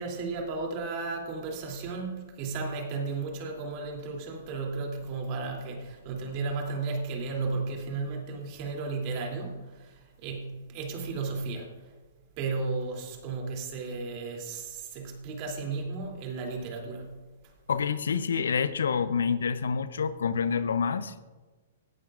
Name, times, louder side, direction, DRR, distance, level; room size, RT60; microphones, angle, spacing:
voice 1, 0.0-11.7 12.4-17.1, right 4 dB, 40° right, 1 dB, 2.9 m, -34 dB
voice 2, 17.7-21.2, left 6 dB, 75° left, 14 dB, 0.6 m, -27 dB
17.0 x 11.5 x 2.5 m, 1.2 s
hypercardioid pair, 115°, 0 cm